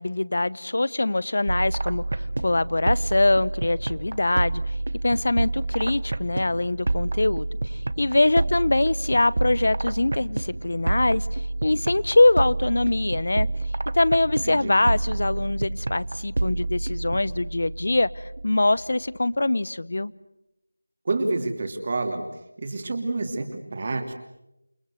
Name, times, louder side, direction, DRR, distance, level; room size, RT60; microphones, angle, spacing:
voice 1, 0.0-2.0 2.4-4.6 5.0-7.5 8.0-11.2 11.6-13.5 13.9-18.1 18.4-20.1, left 2 dB, 55° left, 0.9 m, -23 dB
sound 1, 1.5-19.1, right 2 dB, 50° right, 1.1 m, -29 dB
voice 2, 14.4-14.7 21.0-22.2 22.6-24.2, right 2 dB, 30° right, 2.9 m, -28 dB
29.0 x 20.5 x 8.0 m
figure-of-eight pair, 175°, 0 cm